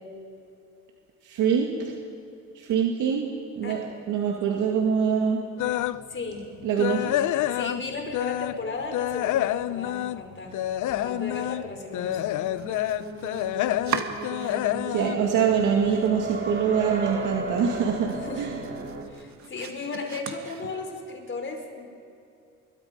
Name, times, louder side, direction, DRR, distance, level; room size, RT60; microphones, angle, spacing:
voice 1, 1.2-1.9 2.5-3.3 3.6-3.8 4.1-5.4 6.6-7.2 14.9-18.6, right 7 dB, 85° right, 0 dB, 2.3 m, -24 dB
sound 1, 5.6-6.0 6.4-8.6 8.9-16.1 16.5-16.8 17.2-17.3 17.7-17.8, left 14 dB, 80° left, 0.6 m, -28 dB
voice 2, 6.1-6.5 7.5-10.5 10.9-12.4 18.1-18.5 19.1-21.8, left 3 dB, 40° left, 3 dB, 5.0 m, -35 dB
sound 2, 11.7-19.0, right 3 dB, 40° right, 3.4 m, -35 dB
Domestic sounds home sounds, 12.4-15.0 15.3-16.0 16.4-16.5 16.9-17.0 17.4-21.1, right 7 dB, 70° right, 1.9 m, -38 dB
26.5 x 23.0 x 5.4 m, 2.5 s
cardioid pair, 90°, 30 cm